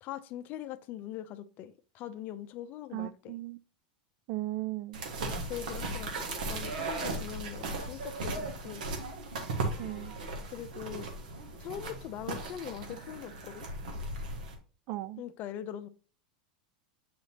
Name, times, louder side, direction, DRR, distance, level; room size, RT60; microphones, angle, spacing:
voice 1, 0.0-3.3 5.5-8.8 10.5-11.1 11.6-13.7 15.2-15.9, left 11 dB, 45° left, 0.6 m, -42 dB
voice 2, 2.9-3.6 4.3-5.0 9.8-10.1 14.9-15.2, right 16 dB, 55° right, 0.3 m, -36 dB
sound 1, 4.9-14.5, right 2 dB, 80° right, 1.7 m, -37 dB
7.1 x 5.1 x 2.9 m
hypercardioid pair, 110°, 4 cm